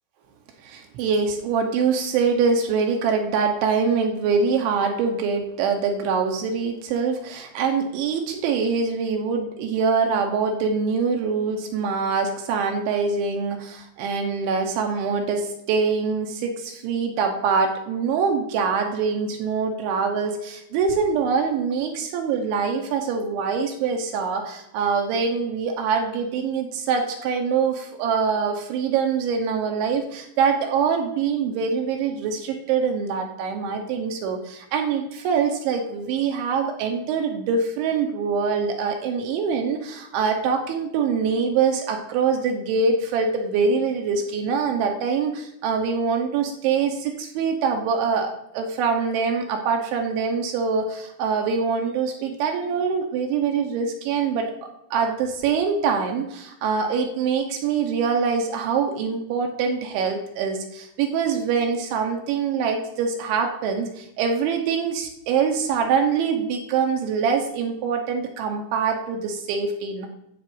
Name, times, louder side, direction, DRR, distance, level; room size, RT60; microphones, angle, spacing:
voice 1, 0.6-54.5 54.9-70.1, right 5 dB, 75° right, 3 dB, 3.2 m, -24 dB
10.5 x 5.4 x 7.8 m, 0.80 s
omnidirectional pair, 5.8 m